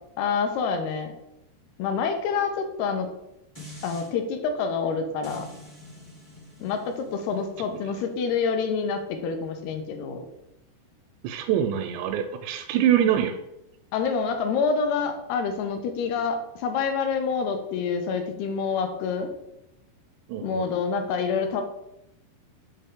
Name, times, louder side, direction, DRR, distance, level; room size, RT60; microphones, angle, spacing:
voice 1, 0.2-1.1 1.8-3.1 3.8-5.5 6.6-10.3 13.9-19.3 20.4-21.6, left 5 dB, 80° left, 6 dB, 2.6 m, -27 dB
sound 1, 3.5-4.1 5.2-10.4 10.8-10.9, left 1 dB, 45° left, 0.3 m, -47 dB
voice 2, 11.2-13.4 20.3-20.7, right 10 dB, 85° right, 5 dB, 2.7 m, -24 dB
7.7 x 4.0 x 3.6 m, 0.85 s
omnidirectional pair, 4.9 m